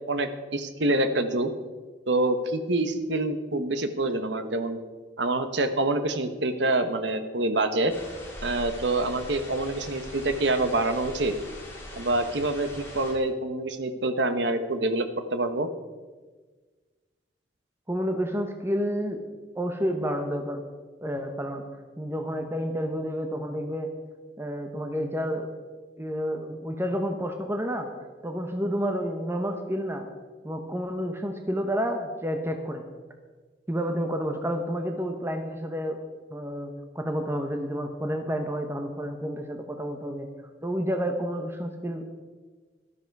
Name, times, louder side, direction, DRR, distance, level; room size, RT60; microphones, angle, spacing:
voice 1, 0.1-1.5 2.1-4.8 5.2-7.9 8.4-11.3 11.9-15.7, right 2 dB, 80° right, 9 dB, 1.1 m, -26 dB
sound 1, 7.9-13.1, left 1 dB, 15° left, 2.8 m, -42 dB
voice 2, 17.9-19.2 19.5-20.6 21.0-21.6 22.0-23.9 24.4-25.5 26.0-27.9 28.2-30.1 30.4-32.8 33.7-36.0 36.3-40.3 40.6-42.1, equal, 15° right, 5 dB, 0.9 m, -30 dB
13.0 x 13.0 x 4.7 m, 1.4 s
head